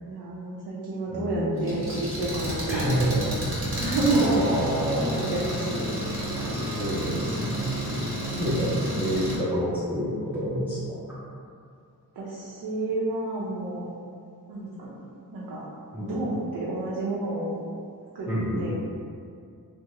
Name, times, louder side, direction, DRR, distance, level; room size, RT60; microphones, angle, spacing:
voice 1, 0.0-3.4 3.8-4.5 5.2-5.9 6.3-6.5 12.2-13.9 14.5-14.9 15.3-15.6 16.1-17.6 18.1-18.3 18.6-18.7, right 2 dB, 85° right, -7 dB, 0.6 m, -29 dB
voice 2, 1.1-1.8 2.7-3.5 4.0-5.4 6.4-7.8 8.4-11.0 15.9-16.2 18.3-18.7, equal, 5° right, -10 dB, 0.3 m, -28 dB
Engine, 1.6-9.4, equal, 35° right, 0.7 m, -30 dB
3.5 x 2.0 x 2.9 m, 2.3 s
wide cardioid pair, 170°, 37 cm